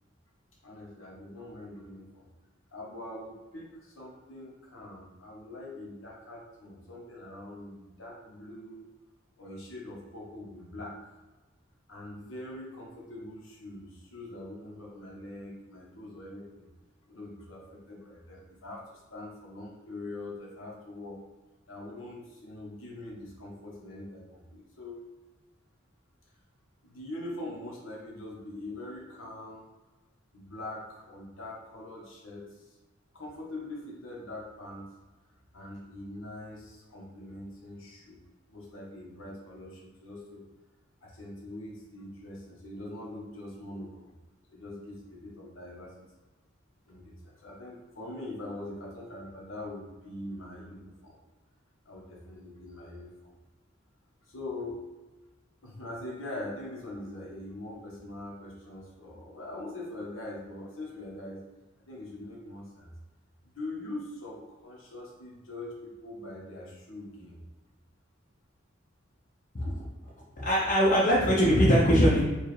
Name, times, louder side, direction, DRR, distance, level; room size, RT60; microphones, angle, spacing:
voice 1, 0.6-2.3 2.7-8.9 9.4-11.0 11.9-16.7 17.1-21.2 21.7-25.0 26.8-29.6 30.3-32.7 33.1-34.9 35.5-38.2 38.5-40.4 41.0-44.1 44.5-45.9 46.9-51.2 51.8-53.3 54.2-54.8 55.6-61.4 61.9-62.9 63.4-67.4, left 1 dB, 90° left, -3 dB, 1.1 m, -43 dB
voice 2, 69.5-69.9 70.4-72.2, equal, 45° left, -6 dB, 0.7 m, -22 dB
4.5 x 2.4 x 3.2 m, 1.2 s
head